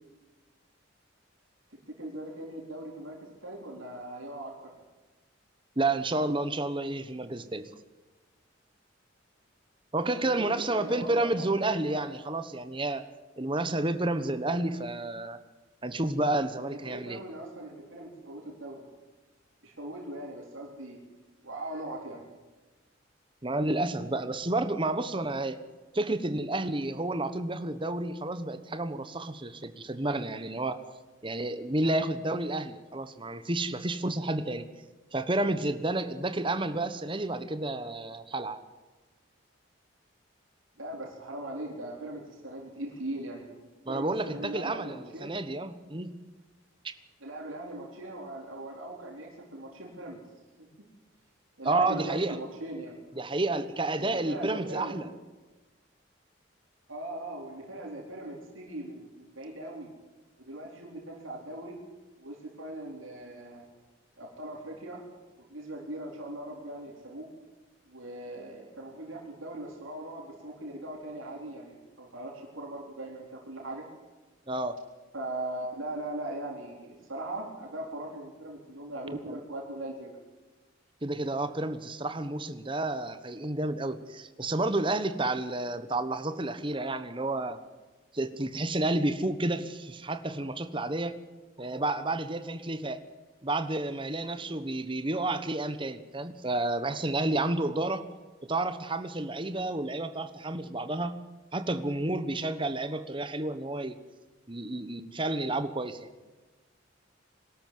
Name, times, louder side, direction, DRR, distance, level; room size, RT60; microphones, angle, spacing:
voice 1, 1.7-4.7 10.0-12.0 16.6-18.8 19.6-21.0 21.4-22.2 40.8-43.5 43.9-45.3 47.2-50.2 50.6-50.7 51.6-52.9 54.0-55.1 56.9-59.9 60.4-61.8 62.2-63.6 64.2-65.0 65.4-67.3 67.9-73.9 75.1-80.2, right 1 dB, 85° right, -1 dB, 4.1 m, -40 dB
voice 2, 5.8-7.6 9.9-13.0 13.4-15.4 15.8-17.2 23.4-25.6 25.9-30.8 31.2-34.7 35.1-38.6 43.8-46.1 46.8-46.9 51.6-52.4 53.2-55.1 74.5-74.8 79.3-79.4 81.0-87.6 88.1-91.2 91.6-93.0 93.4-98.1 98.4-101.2 101.5-104.0 104.5-106.1, right 2 dB, 25° right, 11 dB, 1.2 m, -30 dB
22.5 x 13.0 x 9.5 m, 1.2 s
head